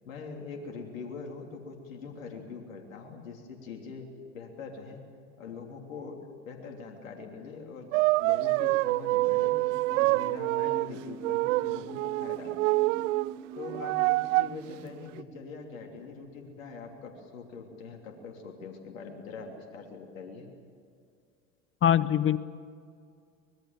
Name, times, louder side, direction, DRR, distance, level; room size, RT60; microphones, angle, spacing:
voice 1, 0.0-4.1 4.3-5.0 5.4-6.2 6.4-9.5 9.9-12.9 13.6-20.5, left 4 dB, 85° left, 1 dB, 3.3 m, -43 dB
sound 1, 7.9-10.9 11.2-13.3 13.6-14.6 15.2-15.3, right 21 dB, 75° right, 0.5 m, -26 dB
sound 2, 9.1-18.5, right 6 dB, 30° right, 2.9 m, -47 dB
voice 2, 21.8-22.4, left 10 dB, 30° left, 16 dB, 0.9 m, -22 dB
25.0 x 21.5 x 7.3 m, 2.3 s
hypercardioid pair, 90°, 39 cm